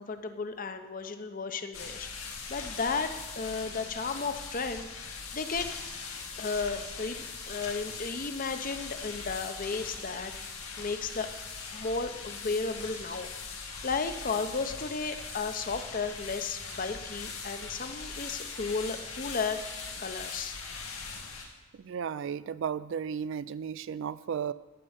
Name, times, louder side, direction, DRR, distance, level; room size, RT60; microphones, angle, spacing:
voice 1, 0.0-5.7 6.4-11.3 11.7-19.6 20.0-20.6, left 4 dB, 40° left, 9 dB, 0.7 m, -34 dB
sound 1, 1.7-21.5, left 4 dB, 80° left, 1.9 m, -41 dB
voice 2, 21.8-24.5, right 7 dB, 60° right, 16 dB, 0.3 m, -34 dB
11.0 x 5.3 x 8.0 m, 1.2 s
head